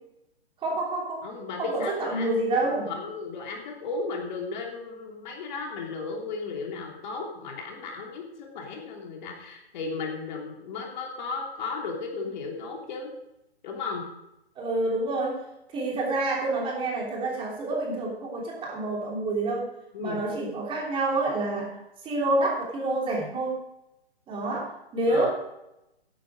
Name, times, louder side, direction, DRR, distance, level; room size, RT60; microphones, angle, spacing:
voice 1, 0.6-1.3 1.6-2.9 14.6-15.4 15.7-19.7 20.0-21.8 22.0-23.6 24.3-25.3, right 2 dB, 15° right, -2 dB, 3.2 m, -28 dB
voice 2, 1.2-13.1 13.6-14.0 19.9-20.2 25.1-25.3, left 4 dB, 45° left, 1 dB, 3.1 m, -35 dB
12.5 x 10.5 x 4.9 m, 0.88 s
hypercardioid pair, 135°, 32 cm